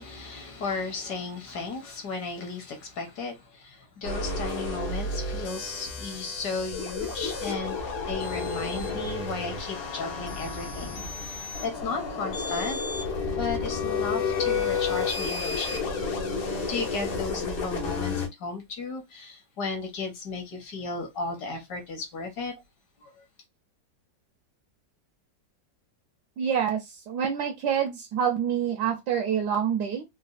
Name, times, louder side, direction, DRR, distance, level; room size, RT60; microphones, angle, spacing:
voice 1, 0.0-12.9 13.3-16.1 16.7-22.5 23.0-23.2, left 4 dB, 65° left, 1.5 m, -35 dB
sound 1, 4.0-18.3, left 4 dB, 80° left, 1.8 m, -31 dB
voice 2, 26.4-30.0, right 8 dB, 70° right, 1.1 m, -27 dB
4.1 x 2.2 x 2.4 m
omnidirectional pair, 2.0 m